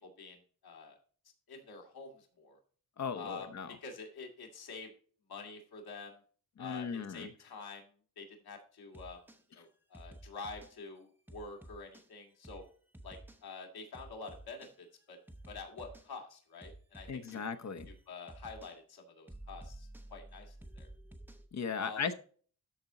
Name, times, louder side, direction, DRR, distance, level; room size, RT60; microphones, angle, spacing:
voice 1, 0.0-0.9 1.5-2.6 3.1-3.5 3.8-4.9 5.3-6.2 6.6-7.9 8.2-9.2 9.5-12.6 13.0-15.2 15.5-17.4 17.9-20.9 21.8-22.0, left 4 dB, 80° left, 2 dB, 2.4 m, -47 dB
voice 2, 3.0-3.7 6.6-7.3 17.1-17.9 21.5-22.1, left 6 dB, 45° left, 10 dB, 0.9 m, -37 dB
sound 1, 8.9-9.4 9.9-10.7 11.3-12.1 12.4-12.7 12.9-13.4 13.9-14.7 15.3-16.1 16.6-17.4 17.8-18.0 18.3-18.7 19.3-21.5, right 1 dB, 5° right, 0.9 m, -51 dB
13.0 x 4.4 x 4.0 m, 0.43 s
wide cardioid pair, 150°, 37 cm